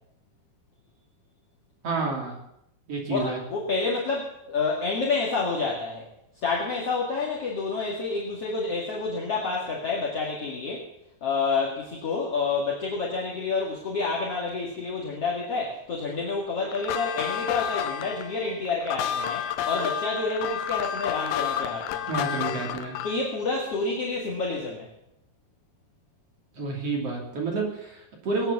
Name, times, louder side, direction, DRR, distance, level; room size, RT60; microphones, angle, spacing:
voice 1, 1.8-2.4 2.9-3.4 22.1-23.0 26.6-28.5, right 3 dB, 35° right, -1 dB, 3.1 m, -29 dB
voice 2, 3.1-6.1 6.4-10.9 11.2-22.1 23.0-24.9, left 4 dB, 50° left, -3 dB, 2.0 m, -29 dB
sound 1, 16.7-23.3, left 9 dB, 80° left, 2.9 m, -30 dB
19.5 x 8.9 x 7.2 m, 0.83 s
omnidirectional pair, 5.6 m